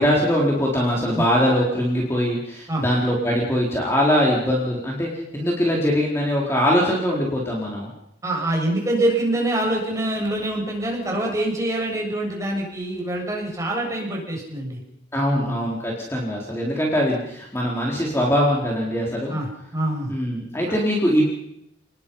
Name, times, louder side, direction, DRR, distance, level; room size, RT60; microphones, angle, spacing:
voice 1, 0.0-7.9 15.1-19.4 20.1-21.3, equal, 15° left, -3 dB, 4.3 m, -22 dB
voice 2, 8.2-14.8 15.3-15.6 19.3-20.1, right 1 dB, 15° right, -1 dB, 7.4 m, -25 dB
30.0 x 20.5 x 5.7 m, 0.77 s
head